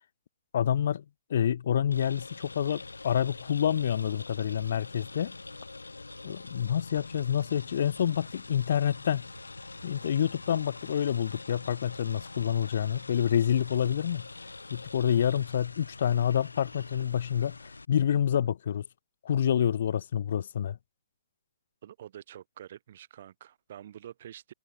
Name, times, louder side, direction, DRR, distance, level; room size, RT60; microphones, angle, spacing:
voice 1, 0.5-1.0 1.3-5.4 6.2-9.2 9.8-14.2 14.7-18.8 19.2-20.8, left 9 dB, 55° left, 0.3 m, -28 dB
sound 1, 1.9-17.8, left 3 dB, 80° left, 1.9 m, -45 dB
sound 2, 6.1-6.3 6.6-6.9 7.2-13.0, right 2 dB, 85° right, 1.2 m, -54 dB
voice 2, 21.8-24.5, right 10 dB, 50° right, 0.5 m, -47 dB
figure-of-eight pair, 125°, 0 cm